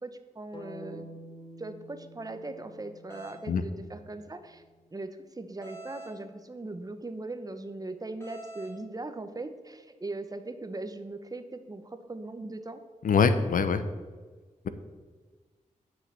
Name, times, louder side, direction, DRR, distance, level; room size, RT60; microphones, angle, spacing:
voice 1, 0.0-1.1 1.6-4.6 4.9-12.8, right 2 dB, 25° right, 9 dB, 0.9 m, -39 dB
sound 1, 0.5-4.6, equal, 35° left, 1.7 m, -49 dB
sound 2, 3.1-3.4 5.6-6.2 8.2-8.8, right 2 dB, 20° left, 2.9 m, -45 dB
voice 2, 13.0-13.8, left 5 dB, 80° left, 11 dB, 0.8 m, -23 dB
10.0 x 6.6 x 6.8 m, 1.4 s
wide cardioid pair, 95°, 14 cm